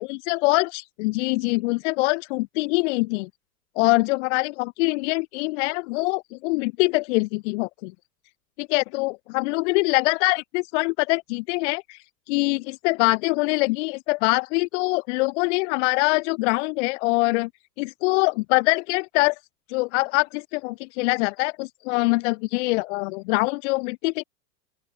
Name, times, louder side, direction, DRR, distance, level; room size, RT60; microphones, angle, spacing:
voice 1, 0.0-3.3 3.8-7.9 8.6-12.0 12.3-17.5 17.8-19.4 19.7-24.2, left 25 dB, 50° left, 0.7 m, -24 dB
open air
hypercardioid pair, 100°, 47 cm